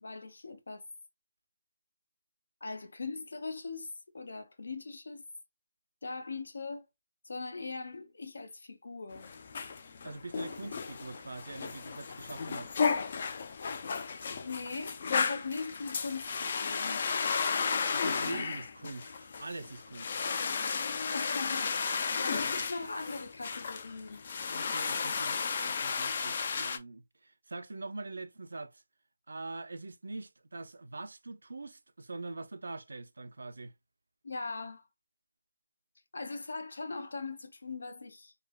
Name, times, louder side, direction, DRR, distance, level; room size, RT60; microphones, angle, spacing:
voice 1, 0.0-0.8 2.6-3.9 4.1-5.2 6.0-6.8 7.2-9.3 14.4-17.0 21.1-24.3 34.2-34.8 36.1-38.3, left 4 dB, 75° left, 0.7 m, -40 dB
sound 1, 9.1-26.8, left 5 dB, 35° left, 0.3 m, -34 dB
voice 2, 10.0-12.7 17.9-20.3 24.5-28.8 29.3-33.7, right 3 dB, 85° right, 0.4 m, -43 dB
3.2 x 2.1 x 2.2 m
hypercardioid pair, 175°, 0 cm